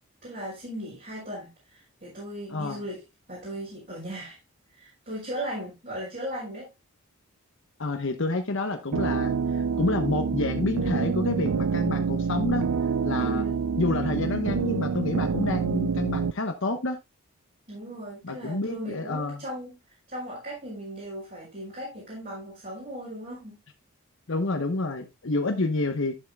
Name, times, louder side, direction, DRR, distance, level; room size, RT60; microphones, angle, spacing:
voice 1, 0.2-3.0 3.3-4.4 4.7-6.7 13.1-13.6 17.7-19.7 20.1-23.6, equal, 40° right, 5.1 m, -37 dB
voice 2, 2.5-2.8 7.8-12.7 13.0-13.4 13.8-17.0 18.2-19.4 24.3-26.2, left 2 dB, 60° left, 1.0 m, -29 dB
sound 1, 8.9-16.3, right 5 dB, 80° right, 0.4 m, -27 dB
12.5 x 7.4 x 2.3 m
head